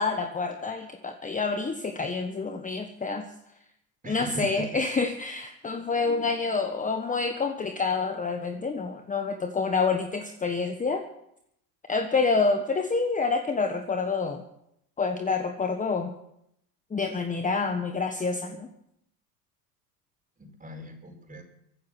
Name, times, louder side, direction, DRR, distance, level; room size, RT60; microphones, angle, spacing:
voice 1, 0.0-3.3 4.1-11.0 11.9-14.4 15.0-16.1 16.9-18.7, left 4 dB, 15° left, 6 dB, 1.3 m, -28 dB
voice 2, 4.0-4.7 20.4-21.4, right 2 dB, 15° right, 3 dB, 5.1 m, -38 dB
23.5 x 9.5 x 6.2 m, 0.77 s
hypercardioid pair, 85°, 50 cm